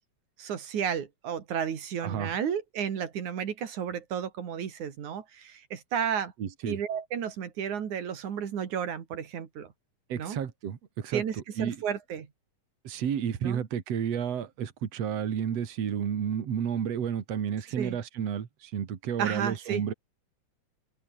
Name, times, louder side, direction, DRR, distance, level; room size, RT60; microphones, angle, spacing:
voice 1, 0.4-6.3 6.7-9.7 10.2-10.4 11.1-12.3 13.4-13.6 17.8-18.0 19.2-19.8, right 8 dB, 85° right, 3.8 m, -32 dB
voice 2, 2.0-2.3 6.4-6.8 10.1-11.2 11.6-11.8 12.8-19.9, right 8 dB, 60° right, 3.2 m, -31 dB
omnidirectional pair, 3.3 m